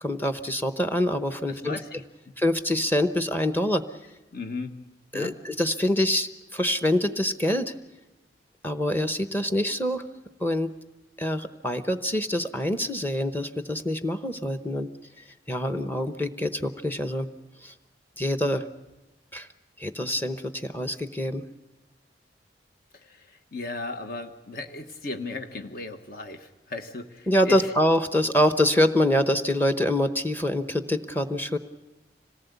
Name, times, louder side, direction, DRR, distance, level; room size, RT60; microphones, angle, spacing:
voice 1, 0.0-1.8 2.4-3.8 5.1-7.7 8.6-10.0 10.4-10.7 11.2-14.9 15.2-17.3 17.6-17.7 18.2-18.6 19.3-19.5 19.8-21.4 27.3-31.6, left 1 dB, 10° left, 9 dB, 0.9 m, -25 dB
voice 2, 1.5-2.0 4.3-4.7 5.1-5.3 22.9-27.7, left 3 dB, 55° left, 5 dB, 1.4 m, -36 dB
26.0 x 18.5 x 8.2 m, 1.1 s
head